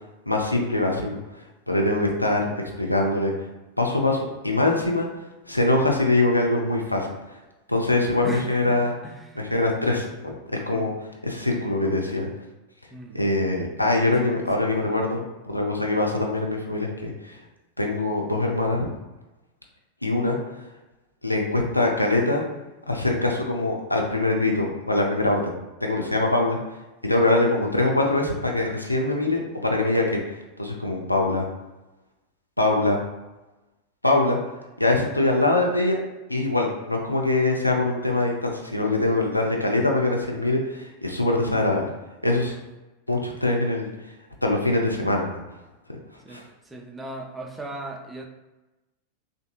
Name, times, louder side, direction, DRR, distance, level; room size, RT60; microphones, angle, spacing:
voice 1, 0.3-1.2 1.7-3.3 3.8-5.1 5.5-7.1 7.7-8.9 9.4-10.4 10.7-10.9 11.2-12.3 13.1-17.4 17.8-18.9 20.0-20.4 21.2-22.4 22.9-25.5 25.8-26.6 27.0-30.2 30.6-31.4 32.6-33.0 34.0-34.4 34.8-36.0 36.3-41.9 42.2-42.5 43.1-43.9 44.4-45.3 45.9-46.0 46.3-46.4, left 2 dB, 85° left, 0 dB, 0.4 m, -23 dB
voice 2, 8.2-9.4 10.7-10.9 12.9-13.2 14.2-14.4 37.5-37.6 42.4-42.6 46.2-48.3, right 2 dB, 10° right, 1 dB, 0.4 m, -38 dB
3.4 x 2.6 x 2.2 m, 1.1 s
figure-of-eight pair, 90°, 0 cm